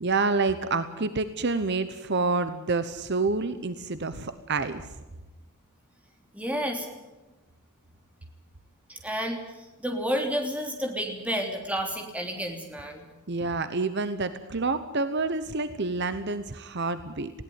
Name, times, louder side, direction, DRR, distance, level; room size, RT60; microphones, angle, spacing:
voice 1, 0.0-4.9 13.3-17.3, right 3 dB, 50° right, 11 dB, 0.9 m, -28 dB
voice 2, 6.3-6.9 8.9-13.1, equal, 5° right, 2 dB, 3.3 m, -31 dB
20.5 x 17.0 x 9.5 m, 1.1 s
head